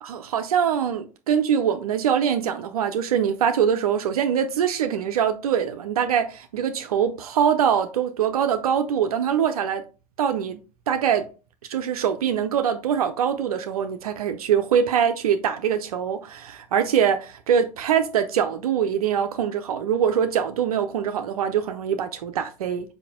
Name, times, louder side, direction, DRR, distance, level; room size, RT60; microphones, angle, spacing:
voice 1, 0.0-9.8 10.2-10.6 10.9-11.3 11.7-22.9, right 8 dB, 65° right, 0.7 m, -23 dB
5.8 x 5.0 x 3.6 m
figure-of-eight pair, 80°, 21 cm